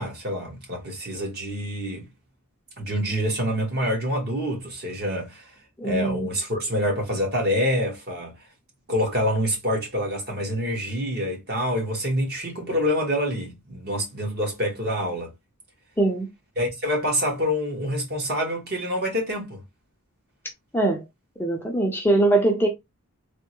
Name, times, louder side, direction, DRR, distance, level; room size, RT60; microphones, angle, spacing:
voice 1, 0.0-2.1 2.8-5.5 5.8-8.3 8.9-15.3 16.6-19.6, equal, 50° right, 1.3 m, -26 dB
voice 2, 5.8-6.3 16.0-16.3 20.7-21.0 21.4-22.7, right 2 dB, 10° left, 0.5 m, -22 dB
3.4 x 2.1 x 2.9 m
head